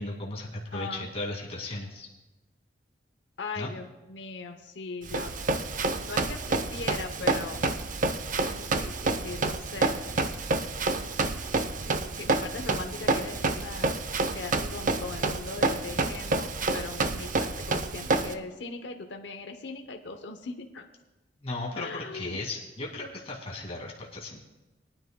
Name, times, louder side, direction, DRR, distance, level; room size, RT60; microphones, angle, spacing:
voice 1, 0.0-2.1 3.6-3.7 21.4-24.4, left 2 dB, 35° left, -3 dB, 2.2 m, -36 dB
voice 2, 0.7-1.1 3.4-5.3 6.1-7.6 8.4-10.0 11.8-13.9 14.3-20.9 21.8-22.4, left 3 dB, 70° left, 5 dB, 0.8 m, -39 dB
Run, 5.1-18.3, right 3 dB, 45° right, 0.6 m, -29 dB
22.5 x 10.0 x 2.2 m, 1.1 s
head